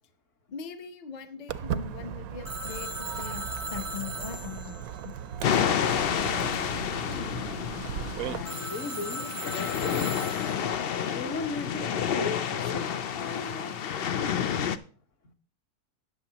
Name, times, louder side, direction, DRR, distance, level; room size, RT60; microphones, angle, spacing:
voice 1, 0.5-3.4 3.7-5.1 9.2-9.3 12.6-12.7, left 6 dB, 35° left, 7 dB, 0.8 m, -40 dB
Walk footsteps, 1.5-8.4, right 9 dB, 70° right, 1.0 m, -37 dB
Telephone, 2.4-6.1 8.4-11.0, equal, 15° right, 0.7 m, -38 dB
sound 1, 5.4-14.8, left 8 dB, 70° left, 0.5 m, -29 dB
voice 2, 8.2-9.2 9.5-10.1 11.1-14.4, left 3 dB, 50° left, 5 dB, 1.7 m, -37 dB
19.5 x 6.9 x 2.9 m, 0.42 s
omnidirectional pair, 1.7 m